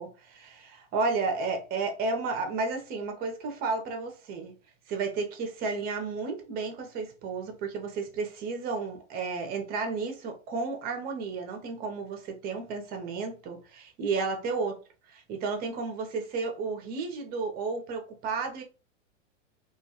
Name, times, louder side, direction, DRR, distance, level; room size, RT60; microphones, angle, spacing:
voice 1, 0.0-4.5 4.9-14.8 15.1-18.6, right 4 dB, 25° right, 0.5 m, -32 dB
2.3 x 2.1 x 2.8 m
hypercardioid pair, 130°, 38 cm